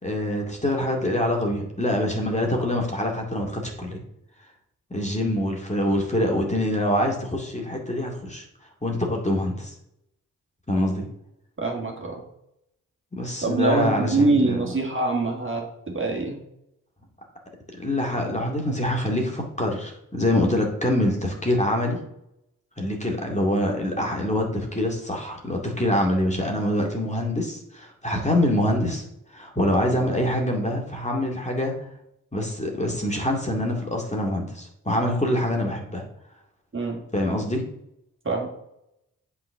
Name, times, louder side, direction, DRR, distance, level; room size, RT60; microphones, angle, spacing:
voice 1, 0.0-4.0 4.9-8.4 8.8-9.7 10.7-11.0 13.1-14.6 17.8-22.0 22.8-29.0 29.3-31.7 32.3-36.0 37.1-37.6, left 1 dB, 20° left, 0 dB, 2.3 m, -25 dB
voice 2, 11.6-12.2 13.4-16.4 36.7-37.0 38.2-38.5, right 3 dB, 35° right, 0 dB, 2.3 m, -24 dB
7.6 x 4.2 x 6.4 m, 0.80 s
cardioid pair, 45°, 34 cm